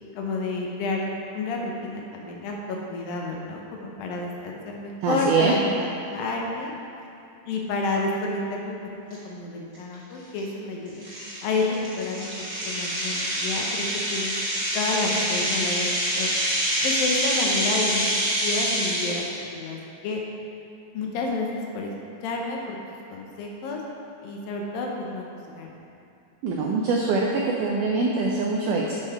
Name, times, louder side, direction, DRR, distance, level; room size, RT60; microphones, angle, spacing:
voice 1, 0.1-6.7 7.5-8.8 9.2-11.1 11.4-12.3 12.7-13.8 14.1-14.3 14.7-16.3 16.8-19.8 20.0-20.2 20.9-21.9 22.2-22.8 23.1-23.8 24.2-25.8, left 3 dB, 75° left, -1 dB, 2.4 m, -30 dB
voice 2, 5.0-5.5 26.4-27.3 27.6-29.0, right 4 dB, 90° right, -1 dB, 1.8 m, -23 dB
sound 1, 9.1-9.2 9.7-9.9 10.4-10.5 11.0-19.3, equal, 35° right, 1.4 m, -26 dB
8.7 x 5.3 x 4.7 m, 2.7 s
omnidirectional pair, 4.4 m